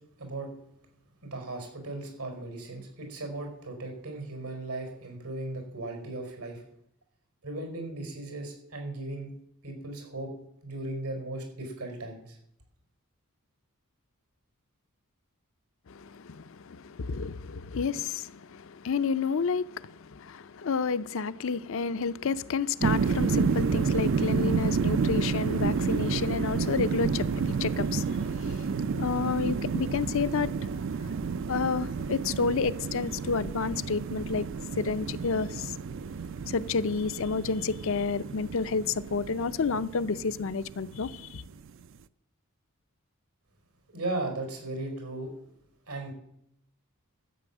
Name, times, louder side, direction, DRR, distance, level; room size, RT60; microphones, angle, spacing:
voice 1, 1.2-6.6 7.4-9.3 9.6-10.3 10.6-12.4 43.9-45.3 45.9-46.1, right 2 dB, 85° right, 4.8 m, -37 dB
voice 2, 15.9-28.2 29.0-30.5 31.5-34.5 34.8-35.7 36.5-41.4, left 5 dB, 60° left, 0.5 m, -30 dB
sound 1, 22.8-41.7, right 5 dB, 60° right, 0.4 m, -30 dB
13.5 x 8.5 x 7.2 m
head